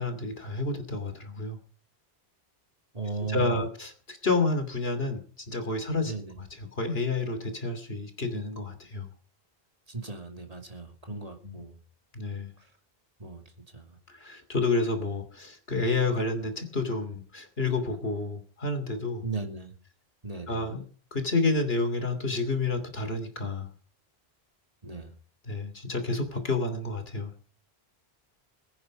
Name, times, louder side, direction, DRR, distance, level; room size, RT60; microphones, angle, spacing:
voice 1, 0.0-1.6 3.3-9.1 11.1-11.6 12.1-12.5 14.1-19.2 20.5-20.8 21.1-23.7 25.4-27.5, left 3 dB, 70° left, 7 dB, 3.1 m, -30 dB
voice 2, 2.9-3.7 6.0-6.3 9.9-11.8 13.2-13.4 13.7-14.0 19.2-19.7 20.2-20.6 24.8-25.1, right 4 dB, 35° right, 4 dB, 2.6 m, -36 dB
21.5 x 9.9 x 5.4 m, 0.43 s
omnidirectional pair, 1.1 m